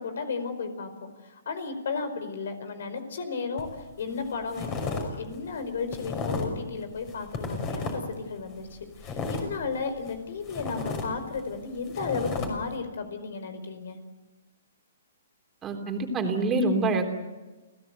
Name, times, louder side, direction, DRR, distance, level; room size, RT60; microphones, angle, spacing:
voice 1, 0.0-14.0, left 4 dB, 65° left, 10 dB, 4.7 m, -34 dB
sound 1, 3.6-3.8 4.2-5.1 5.3-6.6 7.0-8.2 8.5-10.2 10.5-12.5, left 4 dB, 30° left, 5.8 m, -33 dB
voice 2, 15.6-17.1, right 2 dB, 20° right, 3 dB, 3.4 m, -26 dB
29.0 x 16.5 x 8.2 m, 1.2 s
hypercardioid pair, 135°, 0 cm